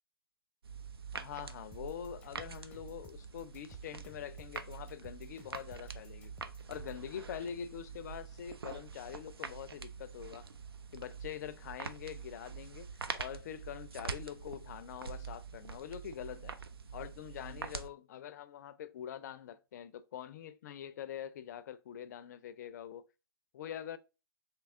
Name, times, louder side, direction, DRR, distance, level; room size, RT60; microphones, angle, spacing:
sound 1, 0.6-17.9, right 6 dB, 80° right, 0.5 m, -45 dB
voice 1, 1.1-6.3 6.7-10.5 10.9-12.9 13.2-16.6 16.9-23.1 23.5-24.0, left 9 dB, 50° left, 0.4 m, -44 dB
sound 2, 1.7-7.0, left 2 dB, 10° left, 0.7 m, -57 dB
3.4 x 3.0 x 3.5 m
hypercardioid pair, 130°, 12 cm